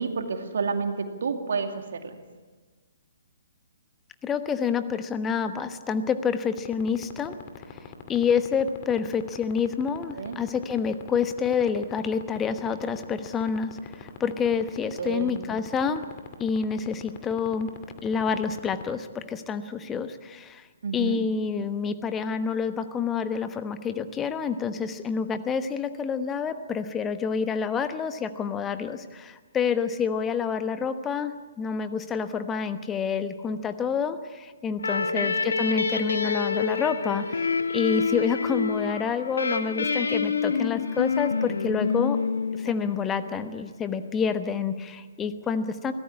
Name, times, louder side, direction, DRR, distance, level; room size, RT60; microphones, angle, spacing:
voice 1, 0.0-1.7 2.0-2.2 10.2-10.4 15.0-15.4 20.8-21.2 35.0-35.3, right 5 dB, 55° right, 5 dB, 2.3 m, -29 dB
voice 2, 4.2-7.4 8.1-16.0 16.4-17.7 18.0-20.7 20.9-31.3 31.6-42.2 42.5-45.9, left 6 dB, 15° left, 10 dB, 1.1 m, -28 dB
sound 1, 6.6-18.9, left 14 dB, 30° left, 2.2 m, -40 dB
sound 2, 34.8-43.3, left 5 dB, 65° left, 1.6 m, -27 dB
24.0 x 17.0 x 8.5 m, 1.4 s
figure-of-eight pair, 125°, 0 cm